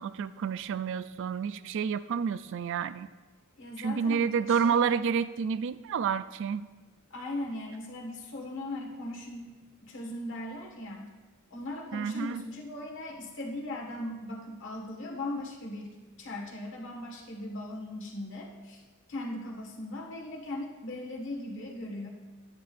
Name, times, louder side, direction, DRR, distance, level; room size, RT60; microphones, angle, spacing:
voice 1, 0.0-3.1 3.8-6.6 11.9-12.4, right 6 dB, 60° right, 14 dB, 0.3 m, -29 dB
voice 2, 3.6-4.9 7.1-9.5 9.8-11.1 11.5-18.8 19.1-22.1, left 1 dB, 60° left, 0 dB, 1.6 m, -39 dB
11.5 x 9.6 x 2.5 m, 1.3 s
head